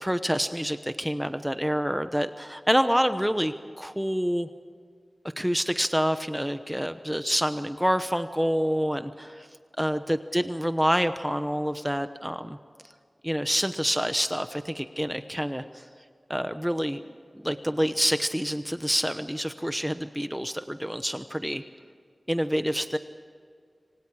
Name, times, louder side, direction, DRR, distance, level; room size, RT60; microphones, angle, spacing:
voice 1, 0.0-4.5 5.4-9.5 9.8-12.6 13.2-15.8 16.3-17.0 17.4-21.6 22.3-23.0, equal, 5° right, 9 dB, 0.9 m, -27 dB
27.0 x 25.5 x 4.9 m, 2.1 s
wide cardioid pair, 60°, 0 cm